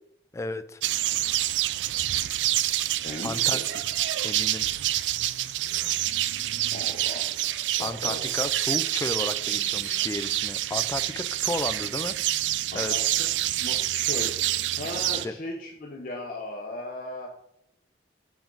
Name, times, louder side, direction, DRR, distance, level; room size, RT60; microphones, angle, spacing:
voice 1, 0.3-0.8 3.2-3.8 4.2-4.7 7.8-12.2 12.7-12.9 15.2-15.4, left 2 dB, 15° left, 10 dB, 0.3 m, -33 dB
sound 1, 0.8-15.3, right 14 dB, 85° right, 0.3 m, -27 dB
voice 2, 3.0-3.6 6.7-7.2 7.6-8.2 12.7-13.3 13.6-14.3 14.8-17.3, left 2 dB, 50° left, 0 dB, 0.9 m, -37 dB
7.0 x 6.0 x 3.9 m, 0.75 s
head